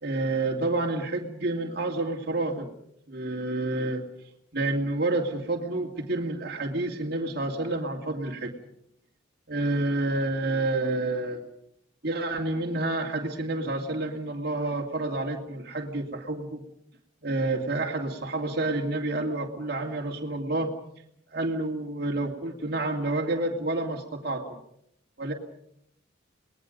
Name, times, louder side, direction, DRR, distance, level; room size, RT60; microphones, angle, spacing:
voice 1, 0.0-2.7 3.1-4.0 4.5-8.5 9.5-11.5 12.0-16.6 17.2-20.7 21.3-24.6 25.2-25.3, right 2 dB, 50° right, 1 dB, 2.6 m, -29 dB
30.0 x 20.5 x 5.4 m, 0.72 s
head